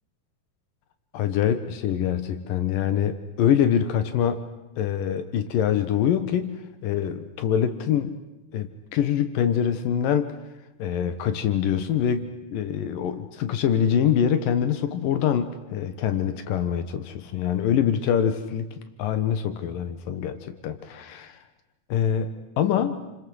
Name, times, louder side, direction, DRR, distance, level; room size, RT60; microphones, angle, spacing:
voice 1, 1.1-4.4 4.8-8.2 8.5-10.3 10.8-18.7 19.0-21.4 21.9-22.3 22.6-23.1, left 9 dB, 85° left, 10 dB, 3.0 m, -24 dB
29.5 x 26.0 x 7.9 m, 0.99 s
omnidirectional pair, 3.8 m